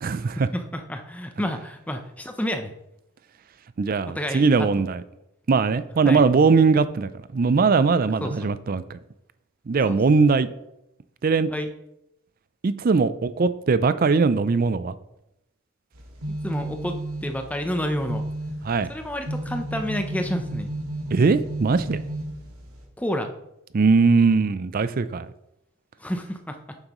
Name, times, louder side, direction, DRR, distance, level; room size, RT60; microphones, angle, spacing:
voice 1, 0.0-0.5 3.8-5.0 5.5-9.0 9.7-10.5 11.2-11.5 12.6-14.9 18.6-18.9 21.1-22.0 23.7-25.3, right 4 dB, 40° right, 14 dB, 0.4 m, -20 dB
voice 2, 0.5-2.7 4.1-4.9 6.0-6.2 8.2-8.3 9.8-10.0 11.5-11.7 16.3-18.3 18.9-20.7 23.0-23.3 26.0-26.8, equal, 5° left, 6 dB, 0.6 m, -30 dB
sound 1, 15.9-22.8, right 1 dB, 85° right, 2.2 m, -33 dB
8.9 x 7.7 x 3.0 m, 0.85 s
head